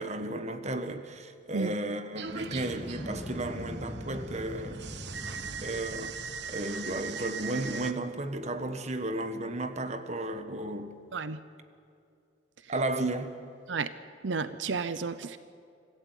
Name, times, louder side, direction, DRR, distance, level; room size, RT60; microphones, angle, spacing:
voice 1, 0.0-4.8 5.6-6.1 6.5-11.0 12.7-13.3, right 1 dB, 40° right, 1.5 m, -34 dB
sound 1, 2.1-7.0, equal, 5° left, 3.2 m, -42 dB
sound 2, 2.2-7.9, right 6 dB, 65° right, 1.1 m, -40 dB
voice 2, 14.2-15.4, right 4 dB, 85° right, 0.7 m, -32 dB
25.0 x 15.5 x 9.1 m
head